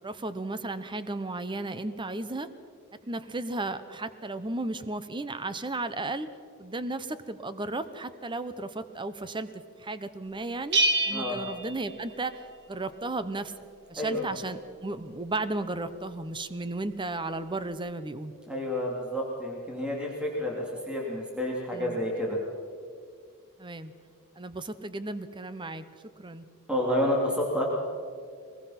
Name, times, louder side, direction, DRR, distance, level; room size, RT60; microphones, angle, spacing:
voice 1, 0.0-2.5 3.1-6.3 6.6-9.5 9.8-10.8 11.1-12.4 12.7-13.5 13.9-18.3 21.7-22.0 23.6-23.9 24.4-25.8 26.2-26.5, right 2 dB, 20° right, 12 dB, 0.9 m, -34 dB
Bell, 10.7-12.6, right 2 dB, 50° right, 2.0 m, -28 dB
voice 2, 14.0-14.3 18.5-22.4 26.7-27.7, left 1 dB, 5° right, -2 dB, 3.1 m, -29 dB
22.5 x 21.0 x 5.9 m, 2.2 s
head